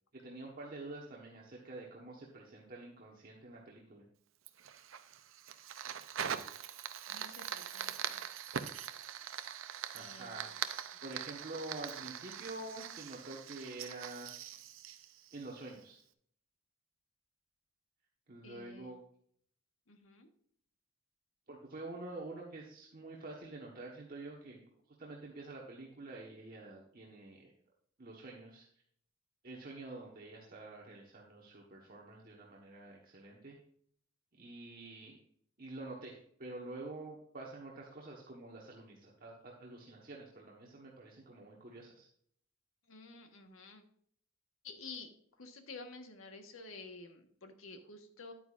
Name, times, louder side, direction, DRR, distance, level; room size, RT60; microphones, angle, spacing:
voice 1, 0.1-4.0 9.9-10.5 11.0-14.3 15.3-16.0 18.3-19.0 21.5-27.5 28.0-28.7 29.4-33.6 34.3-35.1 35.6-42.1, right 2 dB, 45° right, -2 dB, 1.3 m, -47 dB
Fire, 4.5-15.8, right 8 dB, 70° right, 0.6 m, -43 dB
voice 2, 7.1-8.2 9.2-9.5 9.9-10.6 10.9-11.0 18.4-19.0 19.9-20.3 42.9-43.8 44.6-45.1 45.4-48.3, left 3 dB, 80° left, 5 dB, 1.4 m, -51 dB
10.0 x 9.0 x 2.5 m, 0.65 s
head